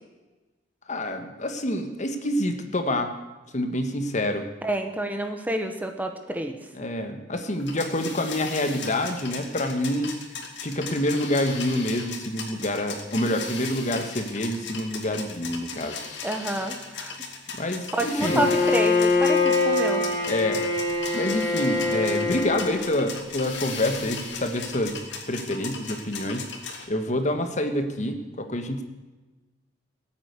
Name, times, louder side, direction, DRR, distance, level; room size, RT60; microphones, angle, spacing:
voice 1, 0.9-3.1 3.5-4.4 6.7-10.2 10.6-16.0 17.5-18.5 20.2-20.6 21.1-26.5 26.9-28.8, left 1 dB, 40° left, 6 dB, 1.6 m, -27 dB
voice 2, 4.6-6.6 16.2-17.2 17.9-20.1, right 1 dB, 10° right, 5 dB, 1.2 m, -28 dB
sound 1, 7.6-26.9, left 5 dB, 80° left, 2.6 m, -37 dB
Bowed string instrument, 18.2-22.9, left 3 dB, 20° left, 3.5 m, -24 dB
19.0 x 8.9 x 8.2 m, 1.2 s
head